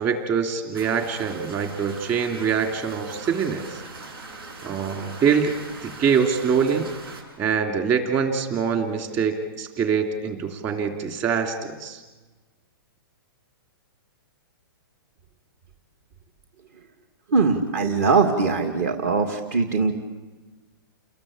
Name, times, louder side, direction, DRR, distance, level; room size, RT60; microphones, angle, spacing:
voice 1, 0.0-3.8 4.6-5.5 5.8-6.9 7.4-12.0, right 6 dB, 20° right, 5 dB, 2.9 m, -24 dB
sound 1, 0.7-7.2, right 3 dB, 75° right, 7.6 m, -40 dB
voice 2, 17.3-19.9, right 4 dB, 40° right, 5 dB, 2.4 m, -21 dB
29.5 x 21.0 x 8.8 m, 1.2 s
hypercardioid pair, 170°, 13 cm